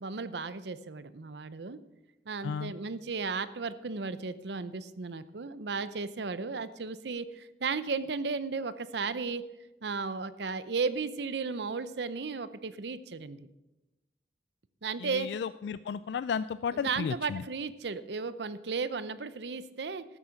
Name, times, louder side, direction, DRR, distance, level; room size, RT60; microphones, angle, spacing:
voice 1, 0.0-1.8 2.3-9.4 9.8-13.5 14.8-15.3 16.7-20.0, right 4 dB, 75° right, 14 dB, 0.7 m, -35 dB
voice 2, 2.4-2.7 15.0-17.4, left 6 dB, 75° left, 15 dB, 0.3 m, -33 dB
13.5 x 8.4 x 6.0 m, 0.99 s
head